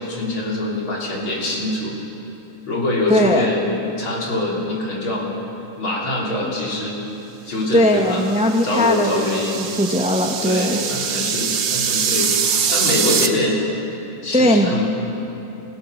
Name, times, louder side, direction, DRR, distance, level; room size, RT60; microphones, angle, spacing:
voice 1, 0.0-1.9 2.7-5.3 5.8-7.0 7.4-8.2 8.6-9.6 10.4-12.3 12.7-13.6 14.2-14.9, left 2 dB, 65° left, -3 dB, 4.5 m, -24 dB
voice 2, 3.1-3.5 7.7-10.8 14.3-14.8, equal, 5° right, 3 dB, 0.6 m, -19 dB
sound 1, 8.1-13.3, right 7 dB, 60° right, 1.8 m, -23 dB
29.0 x 15.0 x 6.6 m, 3.0 s
omnidirectional pair, 2.4 m